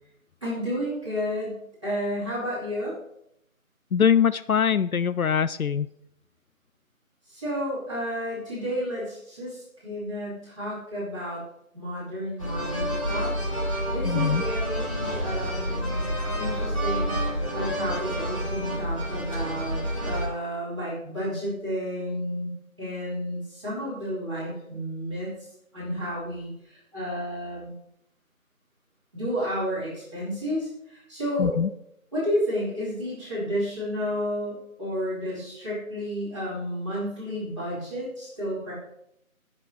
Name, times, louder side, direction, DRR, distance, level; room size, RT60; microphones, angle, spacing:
voice 1, 0.4-1.6 1.8-2.9 7.3-11.4 11.7-13.3 13.6-22.5 22.8-25.3 25.7-27.7 29.1-31.5 32.1-38.7, equal, 20° right, -11 dB, 4.6 m, -31 dB
voice 2, 3.9-5.9 14.0-14.4 31.4-31.7, left 7 dB, 75° left, 16 dB, 0.5 m, -22 dB
sound 1, 12.4-20.3, equal, 20° left, 1.9 m, -29 dB
20.0 x 7.5 x 3.3 m, 0.75 s
figure-of-eight pair, 175°, 42 cm